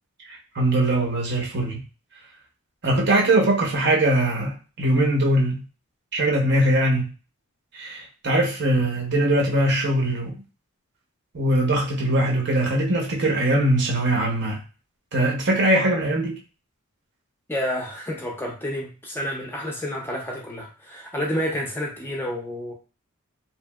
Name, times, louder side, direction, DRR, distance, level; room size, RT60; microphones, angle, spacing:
voice 1, 0.3-1.8 2.8-5.6 6.1-7.1 7.7-10.4 11.3-14.6 15.1-16.4, right 1 dB, 50° right, 0 dB, 0.7 m, -21 dB
voice 2, 17.5-22.7, equal, 10° left, -1 dB, 0.5 m, -29 dB
2.8 x 2.6 x 2.3 m, 0.34 s
head